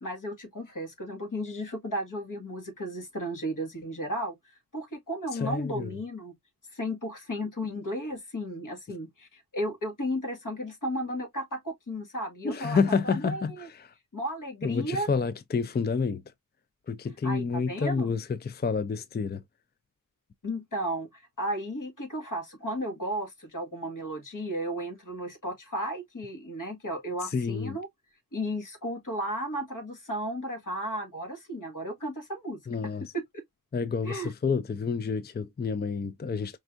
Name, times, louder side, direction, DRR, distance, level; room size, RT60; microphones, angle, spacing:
voice 1, 0.0-6.3 6.7-13.7 14.1-15.1 17.2-18.1 20.4-27.9 28.3-33.2 34.0-34.3, equal, 70° left, 1.9 m, -34 dB
voice 2, 5.3-5.9 12.4-13.9 14.6-16.2 16.9-19.4 27.3-27.8 32.7-33.1 33.7-36.6, left 5 dB, 30° left, 0.4 m, -29 dB
5.2 x 3.4 x 2.5 m
wide cardioid pair, 65°, 33 cm